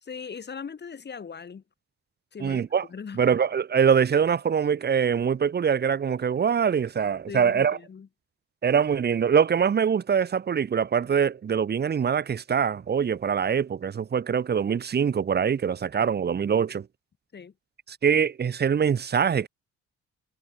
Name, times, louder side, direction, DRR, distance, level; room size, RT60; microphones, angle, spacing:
voice 1, 0.0-1.6 2.3-3.2 7.3-8.1 17.3-17.5, left 6 dB, 35° left, 1.5 m, -39 dB
voice 2, 2.4-2.8 3.1-7.8 8.6-16.9 17.9-19.5, right 7 dB, 35° right, 0.8 m, -23 dB
cardioid pair, 90°, 30 cm